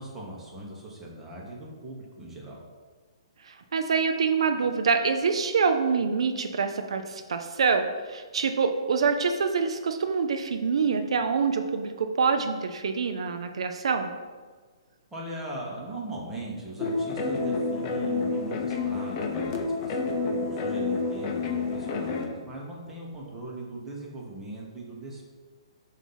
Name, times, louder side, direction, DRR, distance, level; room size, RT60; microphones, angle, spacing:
voice 1, 0.0-2.6 15.1-25.2, right 2 dB, 10° right, -4 dB, 1.2 m, -40 dB
voice 2, 3.4-14.1, right 5 dB, 75° right, 6 dB, 0.5 m, -26 dB
sound 1, 16.8-22.3, left 3 dB, 35° left, 0.8 m, -29 dB
7.2 x 2.8 x 5.5 m, 1.4 s
hypercardioid pair, 150°, 3 cm